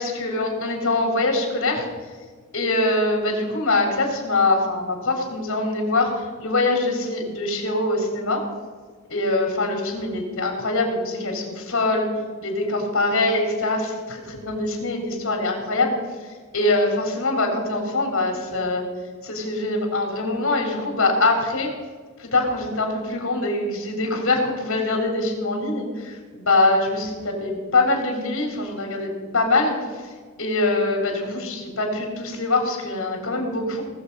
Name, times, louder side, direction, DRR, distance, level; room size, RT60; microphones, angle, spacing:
voice 1, 0.0-1.9 2.5-8.4 9.1-12.1 12.4-16.0 16.5-18.8 19.2-21.7 22.2-30.1 30.4-33.8, left 2 dB, 85° left, 2 dB, 3.5 m, -23 dB
19.0 x 7.1 x 5.4 m, 1.5 s
head